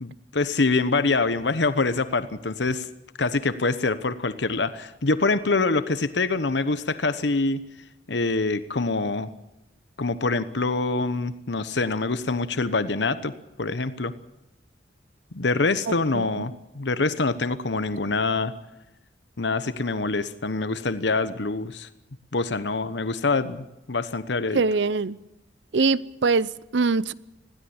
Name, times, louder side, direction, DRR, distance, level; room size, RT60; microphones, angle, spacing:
voice 1, 0.0-2.9 3.2-7.6 8.1-9.3 10.0-13.3 13.6-14.1 15.3-18.5 19.4-21.9 22.3-24.6, left 3 dB, 70° left, 1.1 m, -25 dB
voice 2, 16.1-16.4 24.5-25.2 25.7-27.1, right 4 dB, 75° right, 0.7 m, -23 dB
21.0 x 16.0 x 8.8 m
head